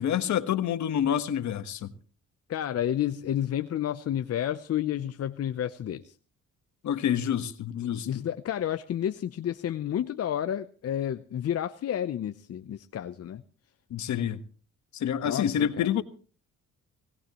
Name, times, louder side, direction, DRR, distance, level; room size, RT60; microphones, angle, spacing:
voice 1, 0.0-1.9 6.8-8.1 13.9-14.4 14.9-16.0, left 9 dB, 70° left, 1.4 m, -27 dB
voice 2, 2.5-6.1 8.1-13.4 15.2-15.9, left 10 dB, 55° left, 0.8 m, -30 dB
20.5 x 17.5 x 3.0 m
cardioid pair, 90°, 30 cm